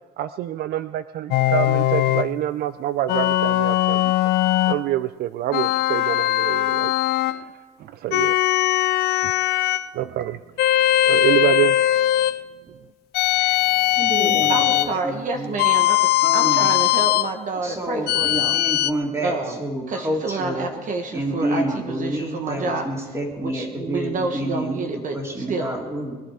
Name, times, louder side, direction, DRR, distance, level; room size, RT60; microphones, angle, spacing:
voice 1, 0.2-4.1 4.7-6.9 7.3-8.3 9.9-10.4 11.1-12.0 13.4-13.6, right 13 dB, 65° right, 13 dB, 0.4 m, -26 dB
sound 1, 1.3-2.3 3.1-4.8 5.5-7.4 8.1-9.9 10.6-12.4 13.1-14.9 15.6-17.3 18.1-18.9, left 14 dB, 75° left, 0.5 m, -20 dB
voice 2, 13.9-15.5 16.2-16.7 17.6-20.7 21.1-24.9 25.1-26.2, right 1 dB, 15° right, 0 dB, 3.2 m, -28 dB
voice 3, 14.5-16.0 16.3-18.6 19.2-19.6 19.9-22.9 23.4-25.8, right 3 dB, 50° right, 4 dB, 1.4 m, -28 dB
21.5 x 11.5 x 5.0 m, 1.4 s
cardioid pair, 110°, 17 cm